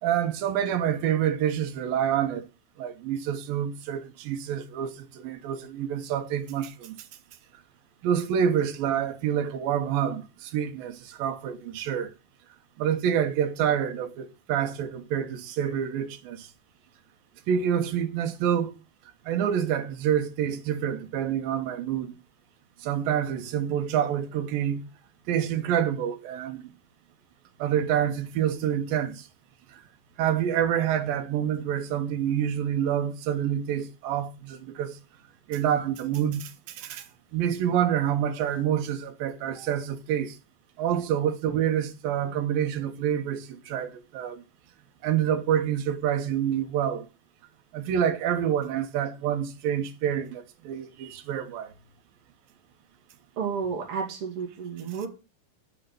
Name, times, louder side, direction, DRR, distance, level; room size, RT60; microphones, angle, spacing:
voice 1, 0.0-2.4 2.8-7.0 8.0-12.1 12.8-16.5 17.5-18.7 19.3-22.1 22.8-24.8 25.3-26.7 27.6-29.2 30.2-35.0 35.5-37.1 37.3-40.3 40.8-44.4 45.0-47.1 47.7-51.7, right 9 dB, 80° right, 2.8 m, -27 dB
voice 2, 53.4-55.1, right 6 dB, 40° right, 3.4 m, -31 dB
9.0 x 8.4 x 6.7 m
omnidirectional pair, 4.1 m